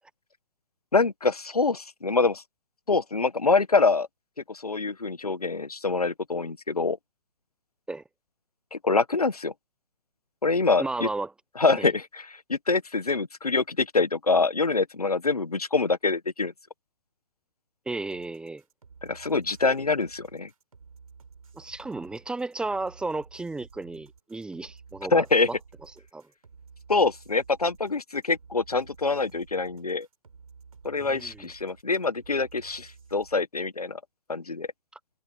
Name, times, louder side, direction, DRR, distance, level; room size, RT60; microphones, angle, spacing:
voice 1, 0.9-2.4 2.9-4.1 4.5-7.0 8.7-9.5 10.4-11.1 11.6-16.5 19.0-20.5 25.1-25.5 26.9-30.1 30.8-34.0 34.3-34.7, left 3 dB, 80° left, 1.5 m, -25 dB
voice 2, 10.8-11.3 11.8-11.9 17.9-18.6 21.5-25.6 26.1-26.2 31.0-31.5, right 3 dB, 5° right, 0.9 m, -34 dB
sound 1, 18.1-33.3, right 5 dB, 70° right, 5.2 m, -52 dB
figure-of-eight pair, 125°, 19 cm